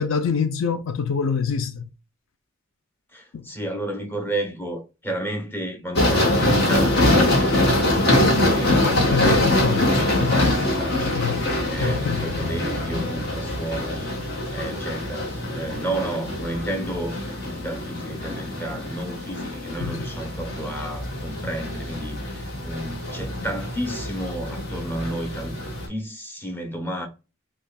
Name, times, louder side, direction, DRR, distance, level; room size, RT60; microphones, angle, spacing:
voice 1, 0.0-1.8 3.3-3.4 8.8-9.8 10.2-10.3 11.0-11.4 11.8-12.3 19.8-20.0, left 6 dB, 65° left, 0.4 m, -25 dB
voice 2, 3.1-14.2 14.5-17.2 17.4-25.6 25.9-27.1, right 1 dB, 10° left, 0.8 m, -32 dB
sound 1, 6.0-25.9, left 1 dB, 50° left, 1.3 m, -24 dB
5.4 x 2.3 x 2.2 m
head